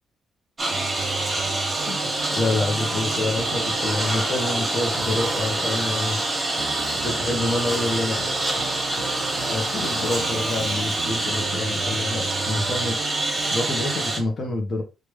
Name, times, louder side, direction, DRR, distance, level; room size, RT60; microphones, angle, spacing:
Engine, 0.6-14.2, right 2 dB, 20° right, 1.3 m, -26 dB
voice 1, 0.7-1.0 1.8-6.2 6.9-8.4 9.5-13.0 13.5-14.8, left 2 dB, 45° left, 0.9 m, -27 dB
sound 1, 0.7-14.2, right 8 dB, 90° right, 0.4 m, -37 dB
sound 2, 3.7-10.2, left 1 dB, 20° left, 1.6 m, -35 dB
3.3 x 2.5 x 3.1 m
cardioid pair, 90°, 0 cm